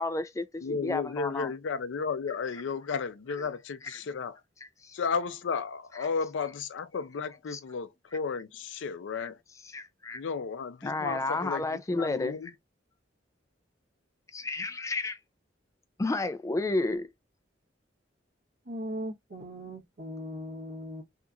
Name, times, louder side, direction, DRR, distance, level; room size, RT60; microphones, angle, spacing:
voice 1, 0.0-1.5 3.9-4.0 4.8-4.9 7.5-7.6 9.2-9.3 9.7-10.2 10.8-12.4 14.3-15.2 16.0-17.1, left 2 dB, 15° left, 0.3 m, -31 dB
voice 2, 0.6-4.4 4.9-9.4 10.1-12.5, left 5 dB, 80° left, 0.4 m, -33 dB
voice 3, 18.6-21.0, equal, 55° right, 1.0 m, -38 dB
2.8 x 2.4 x 2.3 m
head